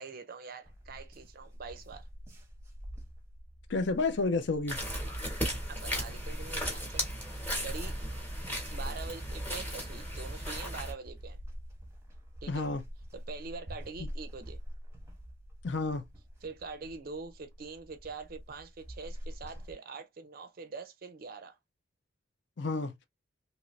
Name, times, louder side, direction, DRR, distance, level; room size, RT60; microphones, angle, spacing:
voice 1, 0.0-2.1 5.7-7.1 7.6-8.0 8.7-11.4 12.4-12.6 13.1-14.6 16.4-21.6, right 4 dB, 50° right, 0.4 m, -44 dB
sound 1, 0.7-19.7, equal, 15° right, 0.8 m, -46 dB
voice 2, 3.7-4.8 12.5-12.8 15.6-16.0 22.6-22.9, left 3 dB, 65° left, 0.5 m, -30 dB
sound 2, 4.7-10.9, equal, 10° left, 1.1 m, -36 dB
2.9 x 2.5 x 3.1 m
head